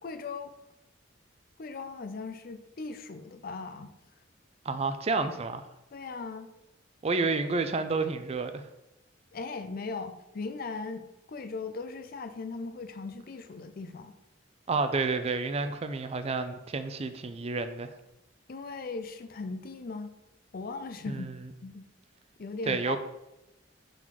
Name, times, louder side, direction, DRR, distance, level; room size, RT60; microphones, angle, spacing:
voice 1, 0.0-0.5 1.6-3.9 5.9-6.5 9.3-14.1 18.5-20.1 20.5-21.3 21.6-21.9 22.4-23.0, left 4 dB, 50° left, 9 dB, 0.5 m, -38 dB
voice 2, 4.7-5.7 7.0-8.7 14.7-17.9 21.1-21.5 22.7-23.0, right 4 dB, 30° right, 9 dB, 0.4 m, -30 dB
5.8 x 3.9 x 4.6 m, 0.92 s
head